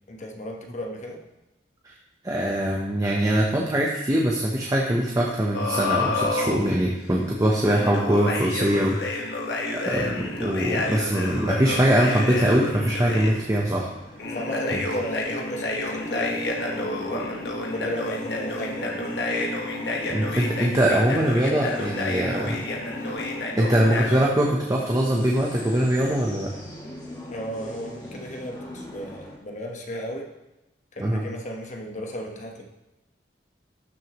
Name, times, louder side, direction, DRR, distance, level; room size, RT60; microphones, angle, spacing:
voice 1, 0.1-1.2 14.3-17.1 17.7-18.9 27.2-30.3 30.9-32.6, equal, 45° left, 1 dB, 1.2 m, -35 dB
voice 2, 2.2-9.3 9.7-13.9 14.7-14.8 20.1-22.6 23.0-23.2 23.6-26.5 31.0-31.2, right 1 dB, 20° right, -2 dB, 0.8 m, -22 dB
sound 1, 5.5-6.6 7.6-13.3 14.2-24.2, left 2 dB, 70° left, 1.4 m, -29 dB
sound 2, 10.1-29.4, equal, 25° left, 1.5 m, -42 dB
13.0 x 6.3 x 3.0 m, 0.96 s
head